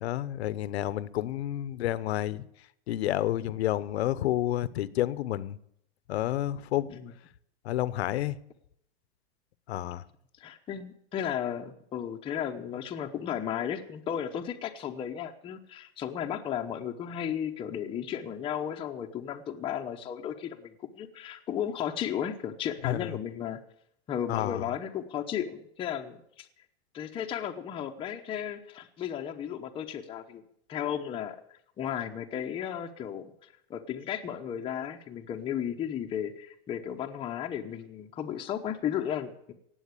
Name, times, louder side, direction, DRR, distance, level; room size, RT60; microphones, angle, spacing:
voice 1, 0.0-2.4 2.9-5.6 6.1-6.9 7.6-8.4 9.7-10.0 22.8-23.1 24.3-24.7, left 13 dB, 80° left, 1.0 m, -30 dB
voice 2, 10.4-23.6 24.1-26.5 26.9-30.4 30.7-31.4 31.8-33.3 33.7-39.5, left 9 dB, 15° left, 0.9 m, -34 dB
17.5 x 8.0 x 8.3 m
supercardioid pair, 160°, 32 cm